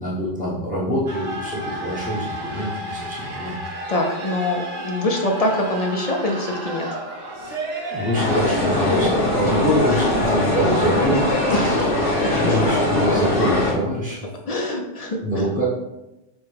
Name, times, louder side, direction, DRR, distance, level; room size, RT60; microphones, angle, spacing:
voice 1, 0.0-3.6 7.6-11.9 12.3-14.3 15.2-15.7, equal, 5° left, -6 dB, 0.8 m, -25 dB
sound 1, 1.1-12.0, right 1 dB, 75° right, 1.2 m, -33 dB
voice 2, 3.9-6.9 10.0-10.1 11.5-12.4 14.5-15.4, left 1 dB, 55° left, 2 dB, 0.4 m, -24 dB
sound 2, 8.1-13.7, left 1 dB, 85° left, 1.8 m, -21 dB
6.0 x 2.2 x 3.3 m, 0.96 s
omnidirectional pair, 1.2 m